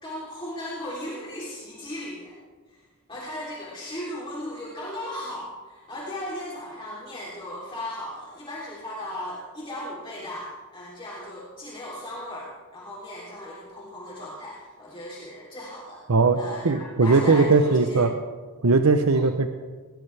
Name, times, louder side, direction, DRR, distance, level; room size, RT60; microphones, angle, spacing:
voice 1, 0.0-2.4 3.1-16.0 16.3-18.0 19.1-19.3, left 1 dB, 25° left, -7 dB, 3.3 m, -36 dB
voice 2, 16.1-16.4 16.6-18.1 18.6-19.5, right 4 dB, 80° right, 7 dB, 0.8 m, -19 dB
19.0 x 19.0 x 3.4 m, 1.4 s
head